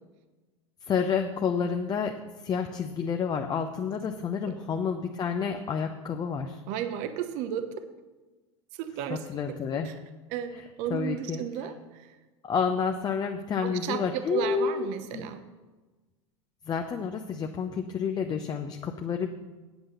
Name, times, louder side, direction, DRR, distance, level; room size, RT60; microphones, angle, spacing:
voice 1, 0.9-2.2 2.4-6.6 9.1-9.9 10.9-11.4 12.4-14.9 15.1-15.3 16.7-19.3, left 6 dB, 25° left, 4 dB, 0.7 m, -29 dB
voice 2, 6.7-7.8 8.7-9.6 9.8-9.9 10.3-12.2 13.6-15.4, right 9 dB, 50° right, 9 dB, 1.0 m, -34 dB
8.7 x 8.0 x 6.6 m, 1.2 s
hypercardioid pair, 90°, 16 cm